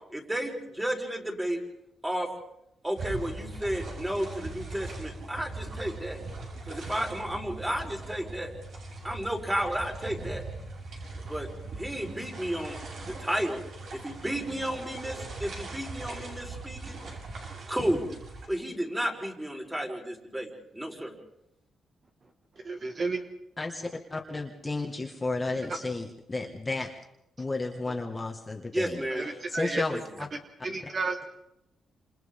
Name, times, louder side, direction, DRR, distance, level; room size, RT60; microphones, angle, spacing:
voice 1, 0.1-1.6 2.0-2.3 2.8-6.2 6.7-8.5 9.0-10.4 11.3-11.5 11.8-12.8 13.1-13.6 13.9-17.0 17.7-18.1 18.5-21.1 28.7-29.3 29.9-30.0, right 1 dB, 10° right, 1 dB, 4.5 m, -32 dB
sound 1, 3.0-18.5, right 3 dB, 60° right, 7.7 m, -40 dB
voice 2, 22.6-23.2 25.7-25.8 29.1-29.8 30.6-31.3, right 3 dB, 40° right, 4 dB, 1.9 m, -32 dB
voice 3, 24.1-26.9 27.4-29.1 29.3-30.3 30.7-30.9, left 3 dB, 20° left, 0 dB, 1.9 m, -33 dB
28.5 x 27.5 x 3.8 m, 0.82 s
cardioid pair, 120°, 0 cm